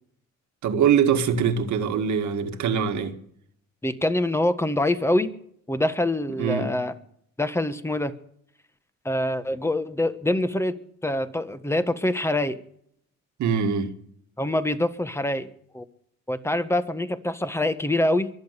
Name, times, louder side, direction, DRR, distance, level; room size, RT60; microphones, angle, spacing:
voice 1, 0.6-3.2 6.4-6.7 13.4-13.9, right 7 dB, 70° right, 2.0 m, -23 dB
voice 2, 3.8-5.3 5.7-6.9 7.4-8.1 9.0-10.7 11.0-12.6 14.4-15.5 15.7-15.8 16.3-18.3, left 1 dB, 10° left, 1.5 m, -25 dB
23.5 x 8.1 x 6.7 m
cardioid pair, 90°, 30 cm